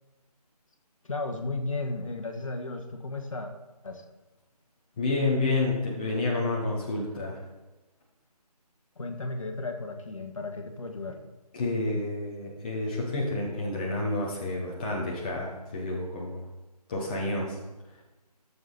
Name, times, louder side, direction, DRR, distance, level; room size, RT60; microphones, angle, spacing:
voice 1, 1.0-3.5 3.8-4.0 9.0-11.2, left 2 dB, 55° left, 4 dB, 1.6 m, -34 dB
voice 2, 5.0-7.4 11.5-16.4 16.9-17.6, left 2 dB, 15° left, -3 dB, 0.9 m, -29 dB
14.0 x 7.0 x 4.1 m, 1.1 s
figure-of-eight pair, 165°, 21 cm